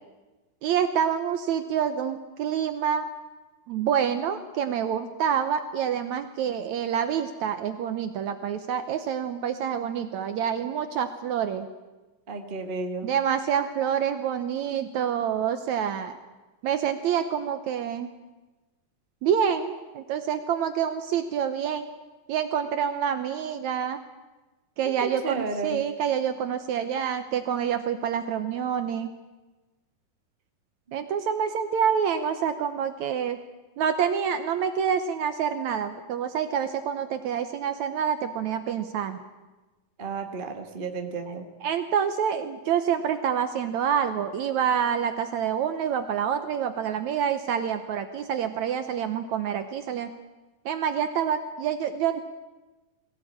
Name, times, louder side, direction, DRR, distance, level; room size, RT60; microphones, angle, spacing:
voice 1, 0.6-3.1 3.7-11.7 13.0-16.2 16.6-18.1 19.2-21.9 22.3-24.0 24.8-29.1 30.9-33.4 33.8-39.2 41.6-50.1 50.7-52.2, right 8 dB, 75° right, 9 dB, 1.8 m, -27 dB
voice 2, 12.3-13.1 24.8-25.8 30.9-31.0 40.0-41.4, right 3 dB, 55° right, 5 dB, 0.5 m, -33 dB
21.0 x 16.5 x 8.7 m, 1.2 s
omnidirectional pair, 4.2 m